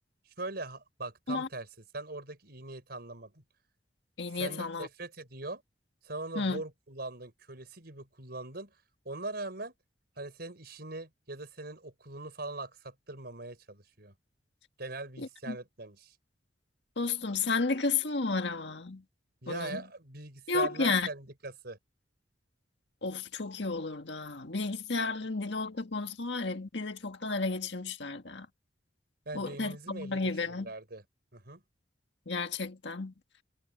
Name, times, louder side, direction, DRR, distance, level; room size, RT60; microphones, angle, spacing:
voice 1, 0.3-1.7 1.9-3.4 4.3-5.6 6.0-8.8 9.1-9.7 10.2-14.1 14.8-16.2 19.4-21.8 29.3-31.0 31.3-31.6, right 2 dB, 60° right, 5.3 m, -41 dB
voice 2, 4.2-4.9 6.3-6.6 15.2-15.6 17.0-19.0 19.5-19.8 20.5-21.1 23.0-28.5 29.3-30.7 32.2-33.1, left 4 dB, 75° left, 1.7 m, -32 dB
head